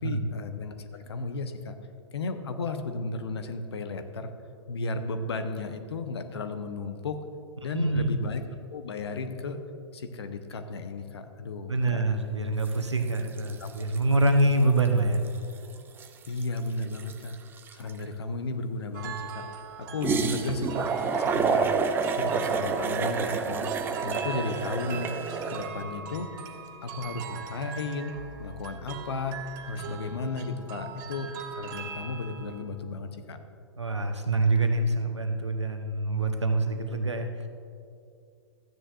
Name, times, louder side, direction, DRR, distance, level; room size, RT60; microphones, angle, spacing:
voice 1, 0.0-1.8 2.1-4.3 4.7-7.2 7.6-8.4 8.7-9.6 9.9-12.0 13.6-13.7 16.3-17.4 17.7-19.5 19.8-20.9 21.2-21.7 22.1-23.7 24.0-25.2 25.5-26.3 26.8-29.4 29.6-33.4, left 3 dB, 65° left, 8 dB, 0.9 m, -34 dB
voice 2, 7.7-8.2 11.7-15.2 33.8-37.5, right 2 dB, 85° right, 5 dB, 1.0 m, -25 dB
sound 1, 12.7-12.9 13.1-14.4 14.8-14.9 15.1-18.0 20.0-25.7, right 5 dB, 15° right, 0.5 m, -29 dB
sound 2, 18.9-32.6, right 6 dB, 45° right, 1.2 m, -40 dB
15.0 x 9.8 x 2.5 m, 2.5 s
figure-of-eight pair, 105°, 14 cm